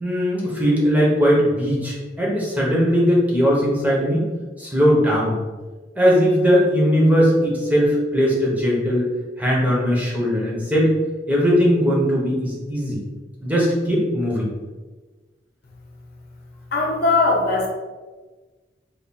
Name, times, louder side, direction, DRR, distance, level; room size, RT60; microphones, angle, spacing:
voice 1, 0.0-4.3 4.6-5.4 6.0-9.1 9.4-10.9 11.3-13.0 13.4-14.5, equal, 10° right, -5 dB, 0.9 m, -19 dB
voice 2, 16.7-17.7, left 3 dB, 60° left, -1 dB, 0.7 m, -19 dB
3.5 x 2.5 x 4.1 m, 1.3 s
head